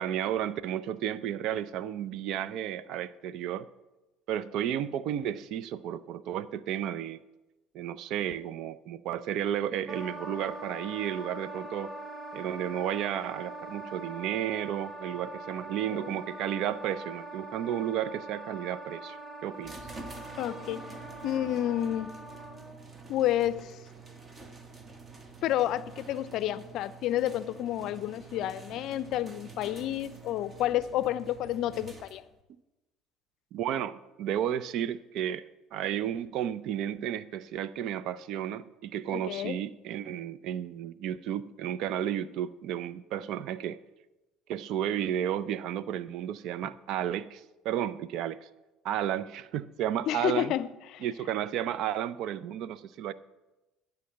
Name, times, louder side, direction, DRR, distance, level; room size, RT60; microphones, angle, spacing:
voice 1, 0.0-3.7 4.3-7.2 7.7-11.9 12.3-19.8 33.5-35.4 35.7-43.8 44.5-48.5 48.8-50.5 51.0-53.1, right 10 dB, 65° right, 0.5 m, -32 dB
Wind instrument woodwind instrument, 9.9-22.8, right 1 dB, 10° right, 2.4 m, -43 dB
sound 1, 19.6-32.4, right 4 dB, 30° right, 1.6 m, -47 dB
voice 2, 20.4-20.8 21.2-22.1 23.1-23.8 25.4-32.2 39.1-39.6 50.1-51.1, left 12 dB, 65° left, 0.4 m, -30 dB
11.0 x 5.2 x 7.8 m
hypercardioid pair, 75°, 0 cm